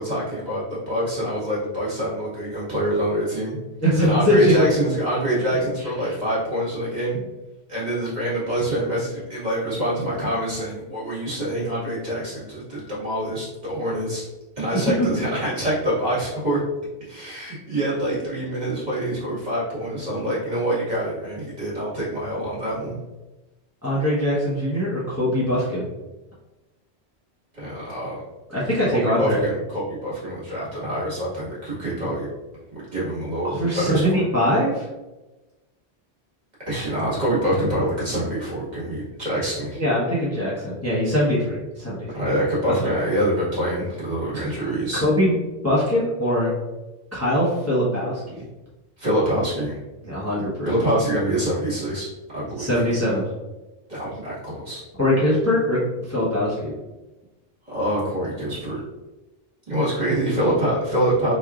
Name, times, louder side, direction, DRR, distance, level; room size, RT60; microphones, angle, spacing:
voice 1, 0.0-3.6 4.0-7.2 7.7-14.3 14.6-16.6 17.0-23.0 27.5-28.2 28.9-32.3 32.9-34.3 36.6-39.8 42.1-45.0 49.0-49.8 50.6-52.1 52.3-52.7 53.9-54.8 57.7-58.8 59.7-61.3, right 1 dB, 40° right, -8 dB, 1.8 m, -25 dB
voice 2, 3.8-4.7 15.0-15.1 23.8-25.8 28.5-29.5 33.4-34.9 39.8-42.1 42.8-43.0 44.3-44.5 44.9-45.3 45.6-46.5 47.1-48.4 50.0-50.7 52.4-53.2 55.0-55.8 56.1-56.7, equal, 15° left, -8 dB, 0.9 m, -22 dB
4.3 x 3.2 x 2.4 m, 1.1 s
omnidirectional pair, 1.1 m